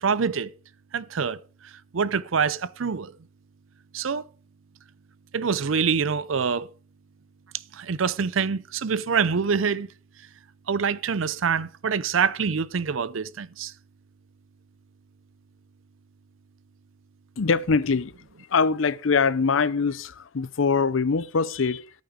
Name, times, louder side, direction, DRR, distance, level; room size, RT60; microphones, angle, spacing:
voice 1, 0.0-0.5 0.9-1.4 1.9-3.1 3.9-4.2 5.3-6.7 7.7-9.9 10.7-13.7, right 6 dB, 90° right, 0.6 m, -25 dB
voice 2, 17.4-18.1 18.5-21.9, left 5 dB, 85° left, 0.6 m, -23 dB
11.5 x 8.9 x 5.0 m
head